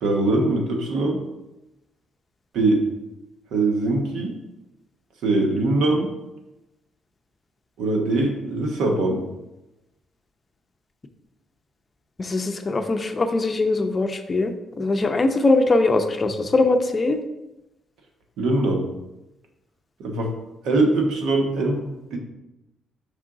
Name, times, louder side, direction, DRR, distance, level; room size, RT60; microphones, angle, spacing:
voice 1, 0.0-1.2 2.5-2.8 3.5-4.3 5.2-6.1 7.8-9.2 18.4-18.9 20.0-20.3 20.6-22.2, right 2 dB, 80° right, 2 dB, 1.1 m, -22 dB
voice 2, 12.2-17.2, left 2 dB, 30° left, 7 dB, 0.6 m, -21 dB
5.4 x 3.7 x 4.8 m, 0.95 s
cardioid pair, 90°, 0 cm